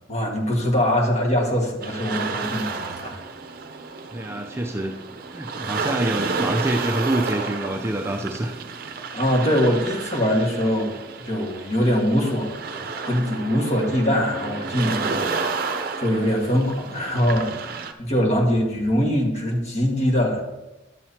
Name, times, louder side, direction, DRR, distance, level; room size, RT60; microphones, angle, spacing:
voice 1, 0.1-3.2 9.1-11.0 11.3-17.5 18.0-20.4, equal, 40° left, -1 dB, 1.7 m, -23 dB
sound 1, 1.8-17.9, right 4 dB, 55° right, 0.6 m, -31 dB
voice 2, 4.1-4.9 5.3-8.6, right 1 dB, 15° right, 2 dB, 0.5 m, -26 dB
11.5 x 7.6 x 2.8 m, 1.0 s
head